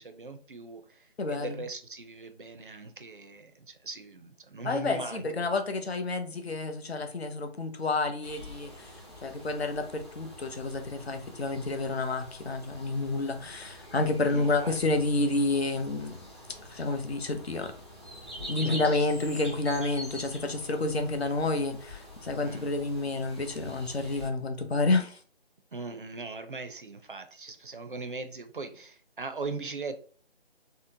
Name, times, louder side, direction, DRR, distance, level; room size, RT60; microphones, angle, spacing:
voice 1, 0.0-5.5 14.3-14.8 18.4-19.1 22.4-22.7 25.7-30.0, right 3 dB, 55° right, 0.5 m, -40 dB
voice 2, 1.2-1.6 4.6-16.2 16.7-17.7 18.5-25.2, left 2 dB, 70° left, 0.7 m, -29 dB
sound 1, 8.2-24.3, equal, 25° left, 0.6 m, -46 dB
3.7 x 2.0 x 2.7 m
figure-of-eight pair, 175°, 32 cm